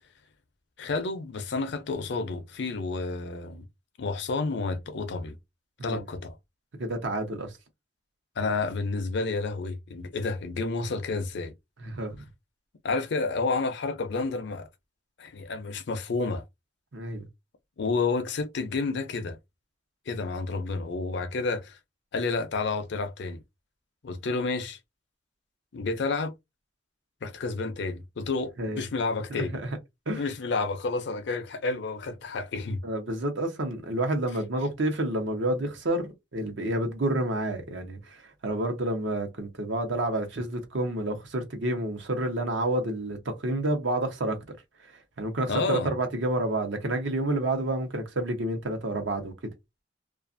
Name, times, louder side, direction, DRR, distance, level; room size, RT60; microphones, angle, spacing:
voice 1, 0.8-3.6 4.0-5.4 5.8-6.4 8.4-11.5 12.8-14.7 15.2-16.4 17.8-19.4 20.1-21.8 22.1-23.4 24.0-24.8 25.7-26.3 27.2-29.6 30.1-32.8 45.5-45.9, left 3 dB, 65° left, 0.5 m, -30 dB
voice 2, 6.8-7.6 11.8-12.2 16.9-17.3 28.6-28.8 29.3-29.7 30.1-30.3 32.8-44.4 44.9-49.3, right 1 dB, 75° right, 0.8 m, -29 dB
2.4 x 2.4 x 2.5 m
head